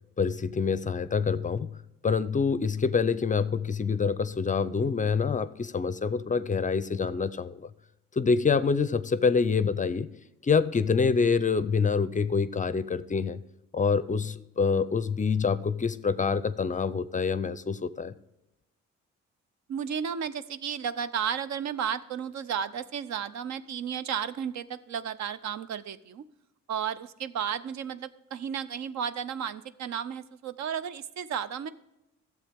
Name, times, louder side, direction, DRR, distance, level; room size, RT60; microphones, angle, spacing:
voice 1, 0.2-1.7 2.0-7.6 8.2-10.1 10.4-13.4 13.7-18.1, left 5 dB, 25° left, 15 dB, 0.4 m, -26 dB
voice 2, 19.7-26.2 26.7-31.7, right 8 dB, 65° right, 14 dB, 0.6 m, -33 dB
12.5 x 7.7 x 3.5 m, 0.94 s
cardioid pair, 90°, 30 cm